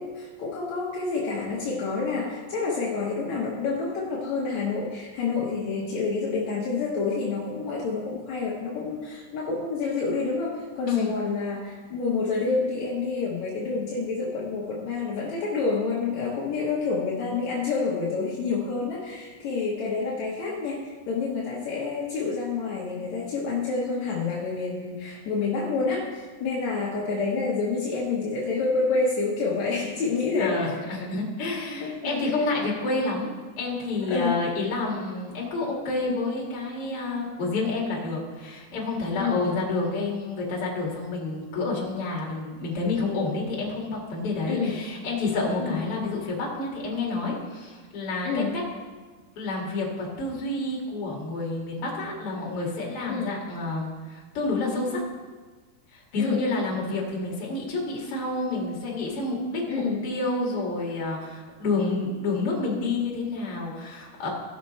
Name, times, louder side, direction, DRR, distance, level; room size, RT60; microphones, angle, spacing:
voice 1, 0.0-30.6 31.8-32.2 34.1-34.4 39.2-39.5 44.5-44.8 45.6-45.8 48.2-48.5 53.1-53.3 56.2-56.4 59.7-60.0, left 4 dB, 70° left, -5 dB, 1.7 m, -28 dB
voice 2, 30.4-33.3 33.6-48.6 49.4-55.0 55.9-64.3, left 3 dB, 45° left, -3 dB, 2.3 m, -29 dB
16.5 x 6.0 x 4.2 m, 1.4 s
omnidirectional pair, 4.9 m